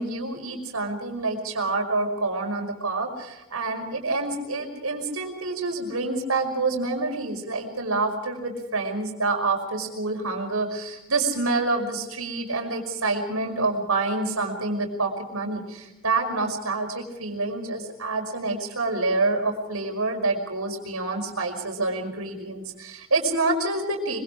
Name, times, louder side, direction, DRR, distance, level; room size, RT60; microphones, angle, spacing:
voice 1, 0.0-24.2, right 3 dB, 80° right, 4 dB, 5.4 m, -27 dB
25.0 x 24.5 x 5.0 m, 0.92 s
head